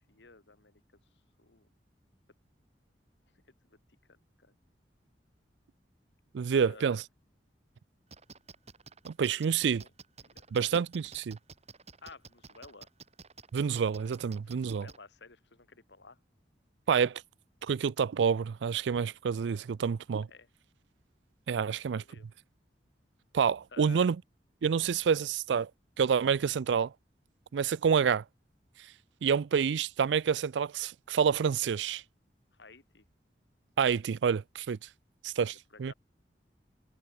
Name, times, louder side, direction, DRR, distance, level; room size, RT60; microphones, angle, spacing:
voice 1, 0.1-0.8 1.4-1.7 3.4-3.8 4.1-4.5 6.5-7.0 9.4-9.9 10.2-10.6 12.0-12.9 14.4-16.2 20.3-20.5 21.6-22.3 23.7-24.0 32.5-33.1 35.4-35.9, left 4 dB, 80° left, 2.2 m, -54 dB
voice 2, 6.3-7.0 9.1-9.8 10.5-11.4 13.5-14.9 16.9-17.2 17.6-20.3 21.5-22.0 23.3-24.2 24.6-25.7 26.0-26.9 27.5-28.2 29.2-32.0 33.8-34.8 35.2-35.5 35.8-35.9, right 6 dB, 85° right, 0.4 m, -28 dB
sound 1, 8.1-15.0, right 4 dB, 40° right, 4.7 m, -50 dB
head